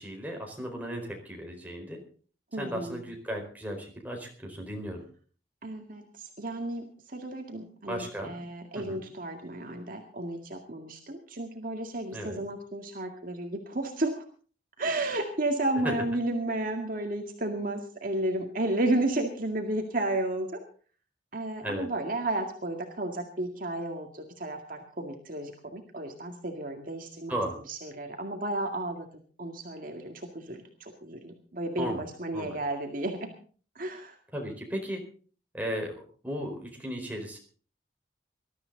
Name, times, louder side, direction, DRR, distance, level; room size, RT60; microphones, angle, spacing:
voice 1, 0.0-2.0 2.6-5.0 7.8-8.3 8.7-9.0 12.1-12.4 15.8-15.9 21.6-21.9 27.3-27.6 31.8-32.0 32.3-32.6 34.3-35.0 35.5-37.4, equal, 10° right, 1 dB, 4.5 m, -35 dB
voice 2, 2.5-3.0 5.6-14.2 14.8-20.5 21.3-27.4 27.7-29.1 29.4-33.3 33.8-34.1, right 1 dB, 50° right, 3 dB, 2.1 m, -32 dB
21.0 x 13.0 x 4.0 m, 0.41 s
head